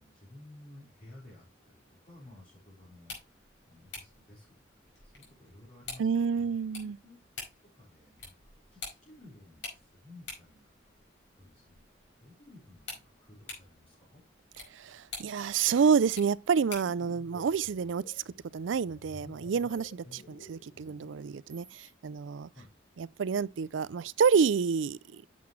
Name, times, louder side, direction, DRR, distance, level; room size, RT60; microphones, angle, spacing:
voice 1, 0.0-7.2 7.6-11.0 11.3-11.9 12.2-14.2 20.0-20.2 22.3-22.7, left 1 dB, 35° left, 4.5 m, -55 dB
sound 1, 2.9-17.0, left 3 dB, 80° left, 5.0 m, -49 dB
voice 2, 6.0-7.0 14.7-18.2 18.5-22.5 23.0-25.2, right 6 dB, 85° right, 0.4 m, -28 dB
sound 2, 16.6-21.4, left 2 dB, 50° left, 0.7 m, -53 dB
sound 3, 19.5-19.9 21.5-21.9, right 7 dB, 25° right, 2.4 m, -56 dB
9.5 x 7.5 x 3.1 m
head